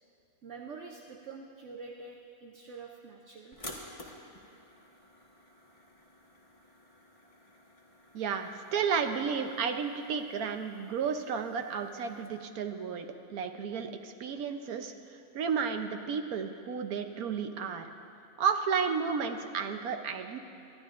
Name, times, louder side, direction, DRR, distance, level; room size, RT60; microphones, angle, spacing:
voice 1, 0.4-3.6, right 4 dB, 60° right, 1 dB, 1.0 m, -46 dB
sound 1, 3.5-12.3, left 1 dB, 25° left, 1.4 m, -52 dB
voice 2, 8.1-14.9 15.3-17.8 18.4-20.4, right 6 dB, 85° right, 6 dB, 1.3 m, -32 dB
25.0 x 12.5 x 2.5 m, 2.7 s
omnidirectional pair, 1.5 m